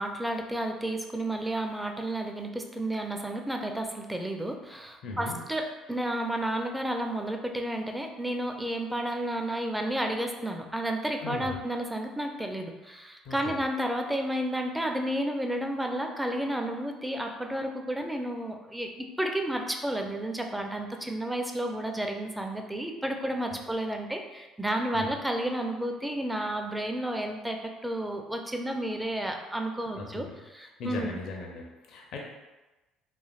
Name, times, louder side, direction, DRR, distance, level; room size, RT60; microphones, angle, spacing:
voice 1, 0.0-30.3 30.5-31.2, right 1 dB, 10° right, 3 dB, 0.4 m, -31 dB
voice 2, 5.0-5.4 11.2-11.6 13.2-13.6 24.9-25.1 30.0-30.3 30.6-32.2, left 3 dB, 65° left, 0 dB, 0.5 m, -38 dB
3.1 x 2.3 x 2.3 m, 1.1 s
supercardioid pair, 75°, 0 cm